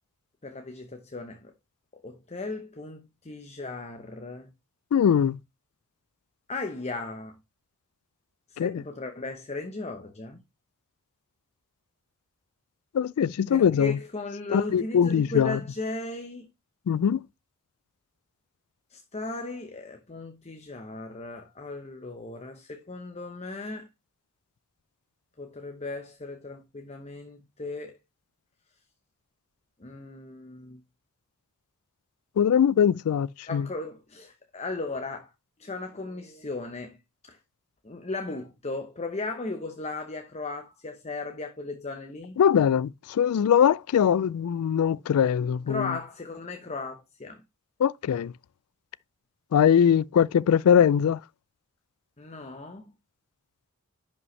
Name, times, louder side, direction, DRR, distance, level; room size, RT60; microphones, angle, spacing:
voice 1, 0.4-1.5 2.0-4.5 6.5-7.3 8.5-10.4 13.5-16.5 18.9-23.9 25.4-28.0 29.8-30.8 33.5-35.3 35.6-37.0 37.3-37.4 37.8-42.4 45.7-47.4 52.2-52.9, left 3 dB, 30° left, 0.8 m, -36 dB
voice 2, 4.9-5.4 8.6-8.8 12.9-14.0 14.5-15.6 16.9-17.2 32.4-33.7 42.4-46.0 47.8-48.3 49.5-51.2, left 8 dB, 80° left, 0.3 m, -22 dB
11.0 x 5.3 x 3.2 m
head